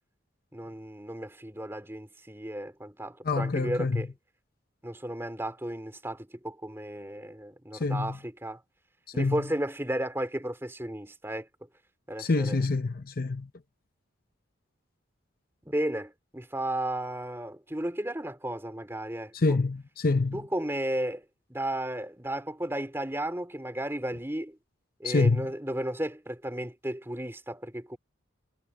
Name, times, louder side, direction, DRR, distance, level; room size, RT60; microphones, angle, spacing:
voice 1, 0.5-4.1 4.8-8.6 9.1-11.5 12.1-12.6 15.6-19.6 20.3-21.2 21.5-24.6 25.0-28.0, right 1 dB, 10° right, 2.8 m, -34 dB
voice 2, 3.2-4.0 7.7-8.2 9.2-9.4 12.2-13.5 19.3-20.4 25.0-25.5, left 3 dB, 45° left, 0.7 m, -26 dB
head